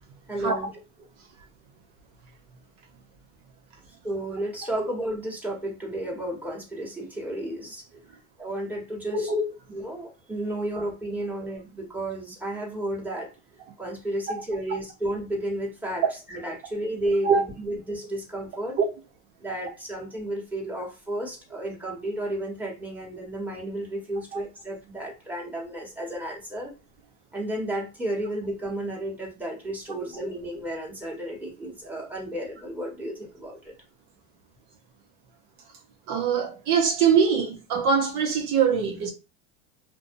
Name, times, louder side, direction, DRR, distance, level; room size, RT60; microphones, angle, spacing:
voice 1, 0.3-0.7 4.0-7.8 8.4-9.3 9.7-13.3 13.8-16.0 16.3-18.8 19.4-26.7 27.3-33.7, right 1 dB, 5° right, 1.2 m, -32 dB
voice 2, 36.1-39.1, right 6 dB, 65° right, 0.8 m, -23 dB
2.6 x 2.1 x 2.6 m
supercardioid pair, 115°, 33 cm